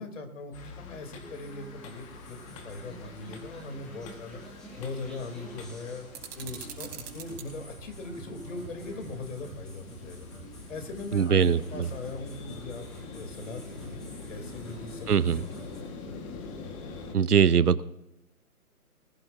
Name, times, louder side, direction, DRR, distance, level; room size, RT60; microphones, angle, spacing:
voice 1, 0.0-4.4 4.8-6.1 6.4-10.3 10.7-12.9 13.1-15.4 16.3-16.5, left 3 dB, 55° left, 5 dB, 3.3 m, -40 dB
sound 1, 0.5-17.1, left 4 dB, 20° left, 1.6 m, -45 dB
sound 2, 1.2-15.8, right 2 dB, ahead, 0.6 m, -48 dB
sound 3, 6.1-7.5, right 8 dB, 25° right, 3.8 m, -43 dB
voice 2, 11.1-11.9 15.1-15.4 17.1-17.8, right 7 dB, 85° right, 18 dB, 0.8 m, -22 dB
21.0 x 16.0 x 2.7 m, 0.88 s
figure-of-eight pair, 140°, 45 cm